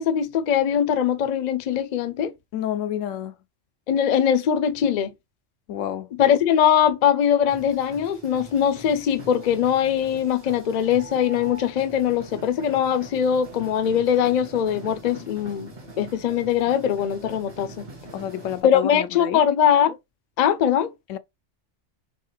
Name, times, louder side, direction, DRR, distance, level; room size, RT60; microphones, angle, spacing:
voice 1, 0.0-2.3 3.9-5.1 6.2-17.9 18.6-20.0 20.4-20.9, left 9 dB, 50° left, 0.5 m, -21 dB
voice 2, 2.5-3.3 5.7-6.1 18.1-19.4 21.1-21.2, left 11 dB, 85° left, 0.9 m, -29 dB
sound 1, 7.5-18.6, right 2 dB, 50° right, 1.5 m, -43 dB
4.5 x 3.5 x 3.1 m
omnidirectional pair, 1.3 m